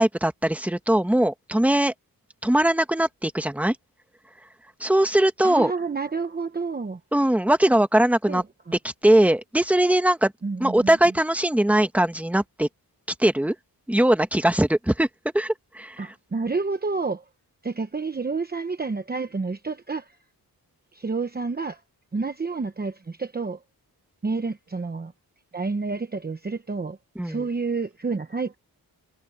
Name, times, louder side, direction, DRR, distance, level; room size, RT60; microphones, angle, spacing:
voice 1, 0.0-1.9 2.4-3.7 4.8-5.7 7.1-8.4 8.8-10.3 10.6-12.7 13.2-13.5 13.9-15.1 15.3-16.1 27.2-27.4, right 1 dB, 5° right, 1.4 m, -21 dB
voice 2, 5.4-7.0 8.3-8.8 10.4-11.2 16.0-17.2 17.6-20.2 20.9-21.8 22.1-23.6 24.2-25.1 25.5-27.0 27.2-28.6, right 4 dB, 25° right, 0.9 m, -29 dB
wide cardioid pair, 160°, 38 cm